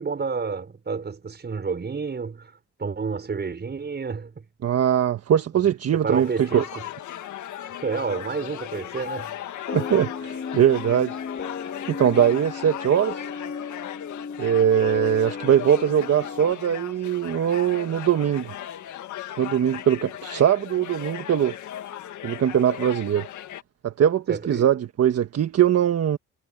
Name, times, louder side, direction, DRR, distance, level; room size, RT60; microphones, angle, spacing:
voice 1, 0.0-2.5 2.8-4.4 5.9-6.7 7.8-9.3 24.3-24.7, right 5 dB, 35° right, 5.6 m, -30 dB
voice 2, 4.6-6.6 9.7-11.1 11.9-13.2 14.4-18.5 19.4-21.5 22.2-23.3 23.8-26.2, right 9 dB, 55° right, 1.5 m, -21 dB
sound 1, 6.1-23.6, left 11 dB, 75° left, 1.8 m, -37 dB
sound 2, 9.7-16.5, left 5 dB, 40° left, 3.1 m, -35 dB
cardioid pair, 90°, 30 cm